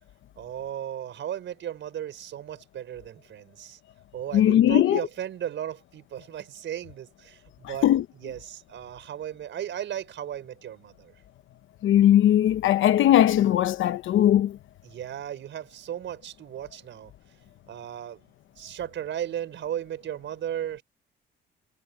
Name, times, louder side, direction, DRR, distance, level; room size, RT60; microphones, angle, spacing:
voice 1, 0.4-3.8 4.1-7.9 8.1-11.1 14.8-17.1 17.7-18.2 18.6-20.8, right 10 dB, 70° right, 5.5 m, -35 dB
voice 2, 4.3-5.0 7.8-8.0 11.8-14.5, left 12 dB, 80° left, 1.0 m, -19 dB
cardioid pair, 90°, 20 cm